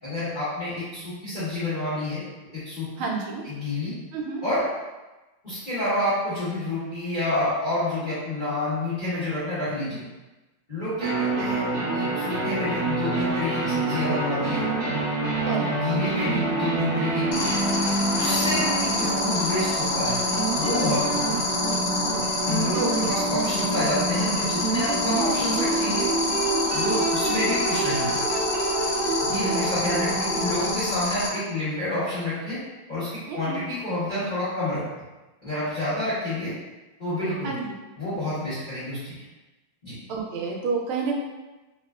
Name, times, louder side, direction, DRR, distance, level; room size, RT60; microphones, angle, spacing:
voice 1, 0.0-2.2 2.5-2.9 3.4-3.9 4.4-4.6 5.4-10.0 10.7-11.6 11.9-14.6 15.4-17.4 18.2-20.2 20.5-21.4 22.5-26.1 26.7-28.2 29.2-32.6 32.9-34.8 35.4-36.5 37.0-37.5 38.0-39.2 39.8-39.9, left 1 dB, 30° left, -14 dB, 1.3 m, -29 dB
voice 2, 3.0-3.5 4.1-4.4 15.5-15.7 22.7-22.9 27.4-27.5 33.3-33.6 37.4-37.7 40.1-41.1, right 5 dB, 85° right, 0 dB, 1.5 m, -29 dB
sound 1, 11.0-30.7, right 2 dB, 60° right, 0.6 m, -27 dB
sound 2, 17.3-31.3, left 4 dB, 75° left, 1.6 m, -28 dB
3.4 x 3.0 x 2.3 m, 1.1 s
omnidirectional pair, 2.2 m